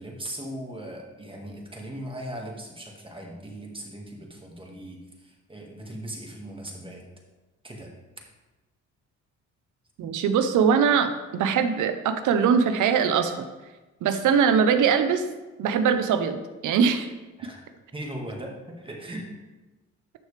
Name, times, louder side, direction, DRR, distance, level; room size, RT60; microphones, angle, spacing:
voice 1, 0.0-7.1 7.6-7.9 14.1-14.2 17.4-17.6 17.9-19.3, right 1 dB, 15° right, 0 dB, 1.9 m, -38 dB
voice 2, 10.0-13.4 14.0-15.2 15.6-17.1, right 6 dB, 80° right, 9 dB, 0.9 m, -22 dB
11.5 x 6.5 x 3.4 m, 1.2 s
cardioid pair, 90°, 30 cm